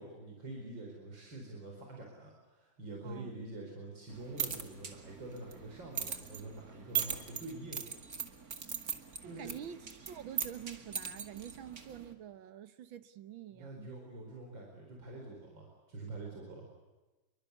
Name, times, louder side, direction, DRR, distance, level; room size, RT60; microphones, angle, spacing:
voice 1, 0.0-7.9 9.2-9.5 13.5-16.7, right 2 dB, 75° right, 5.4 m, -46 dB
voice 2, 3.0-3.4 9.2-13.9, right 10 dB, 90° right, 2.0 m, -47 dB
sound 1, 4.1-12.1, right 8 dB, 50° right, 2.5 m, -40 dB
27.5 x 23.5 x 8.4 m
omnidirectional pair, 2.1 m